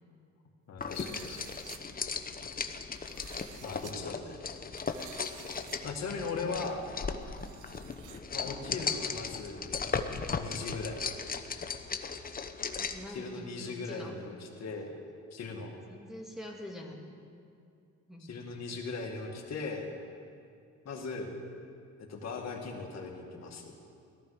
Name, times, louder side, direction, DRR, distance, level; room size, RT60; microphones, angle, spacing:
voice 1, 0.7-1.6 3.6-4.4 5.8-6.9 8.3-9.7 10.3-11.0 13.1-14.9 15.3-15.7 18.2-19.9 20.9-21.3 22.1-23.7, left 4 dB, 60° left, 1 dB, 2.1 m, -38 dB
sound 1, 0.8-13.1, left 5 dB, 30° left, 0.9 m, -37 dB
sound 2, 0.8-1.8 3.0-3.9 4.8-5.8 6.1-6.2 7.2-8.2, right 8 dB, 85° right, 1.1 m, -51 dB
voice 2, 12.8-14.2 15.9-17.0 18.1-18.3, left 1 dB, ahead, -2 dB, 2.1 m, -45 dB
18.0 x 13.5 x 5.0 m, 2.4 s
cardioid pair, 90°, 30 cm